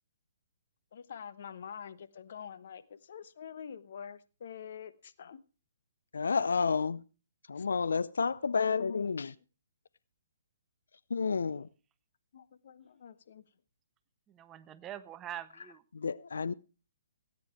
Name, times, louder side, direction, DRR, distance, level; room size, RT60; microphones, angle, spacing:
voice 1, 0.9-5.4 7.6-7.7 8.8-9.2 12.3-13.4, left 7 dB, 55° left, 1.0 m, -46 dB
voice 2, 6.1-7.0 7.5-9.3 11.1-11.7 15.9-16.5, left 5 dB, 70° left, 0.5 m, -30 dB
voice 3, 14.3-15.8, right 11 dB, 20° right, 0.7 m, -44 dB
17.0 x 9.4 x 4.6 m
figure-of-eight pair, 130°, 0 cm